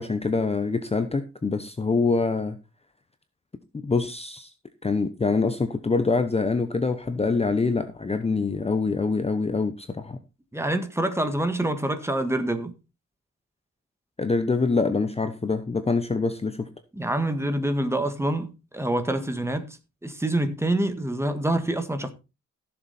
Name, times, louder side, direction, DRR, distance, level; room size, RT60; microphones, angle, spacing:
voice 1, 0.0-2.6 3.8-4.5 4.8-10.2 14.2-16.7, left 4 dB, 20° left, 0.9 m, -25 dB
voice 2, 10.5-12.7 16.9-19.8 20.0-22.1, right 1 dB, 10° right, 1.7 m, -26 dB
15.5 x 7.1 x 4.2 m
wide cardioid pair, 130°, 30 cm